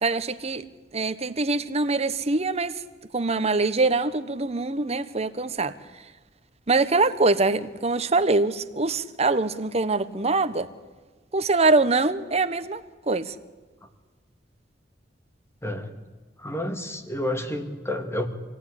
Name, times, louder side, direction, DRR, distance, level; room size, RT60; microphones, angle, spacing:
voice 1, 0.0-0.7 0.9-2.8 3.1-5.7 6.7-10.7 11.3-13.3, right 3 dB, 35° right, 1.1 m, -24 dB
voice 2, 15.6-15.9 16.4-18.3, left 1 dB, 15° left, 2.2 m, -30 dB
26.0 x 17.5 x 9.9 m
head